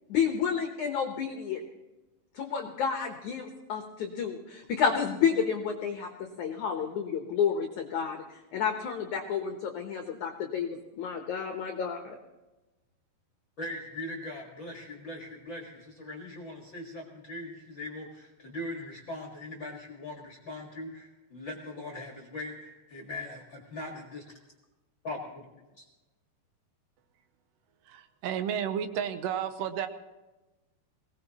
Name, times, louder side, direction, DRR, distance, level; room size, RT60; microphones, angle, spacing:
voice 1, 0.1-1.6 2.3-8.2 8.5-12.1, left 7 dB, 75° left, 4 dB, 1.8 m, -30 dB
voice 2, 13.6-24.2 25.0-25.8, left 1 dB, 50° left, -1 dB, 1.5 m, -40 dB
voice 3, 27.8-29.9, right 9 dB, 80° right, 9 dB, 2.8 m, -32 dB
21.5 x 18.0 x 3.0 m, 1.1 s
omnidirectional pair, 5.0 m